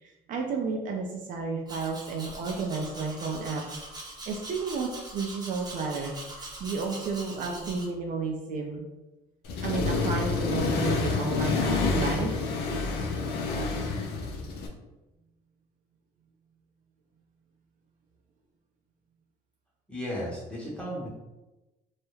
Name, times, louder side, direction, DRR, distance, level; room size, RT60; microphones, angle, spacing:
voice 1, 0.0-3.8 4.3-8.8 9.6-12.6, right 4 dB, 50° right, 0 dB, 0.4 m, -32 dB
Domestic sounds home sounds, 1.7-7.9, right 2 dB, 25° right, 0.7 m, -42 dB
Accelerating revving vroom, 9.5-14.7, left 4 dB, 75° left, 0.4 m, -28 dB
voice 2, 19.9-21.1, equal, 5° left, -5 dB, 0.9 m, -34 dB
2.3 x 2.0 x 3.0 m, 1.0 s
cardioid pair, 110°, 17 cm